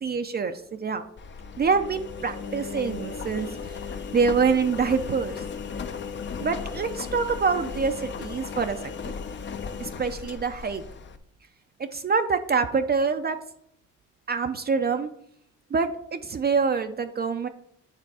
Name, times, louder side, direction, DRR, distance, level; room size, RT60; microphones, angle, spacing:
voice 1, 0.0-1.0 1.6-3.8 4.1-5.4 6.4-9.2 9.8-10.8 11.9-13.4 14.3-15.1 15.7-17.5, right 5 dB, 35° right, 7 dB, 0.5 m, -26 dB
Engine, 1.2-11.2, left 6 dB, 40° left, 0.6 m, -36 dB
9.2 x 3.4 x 4.7 m, 0.70 s
cardioid pair, 90°, 30 cm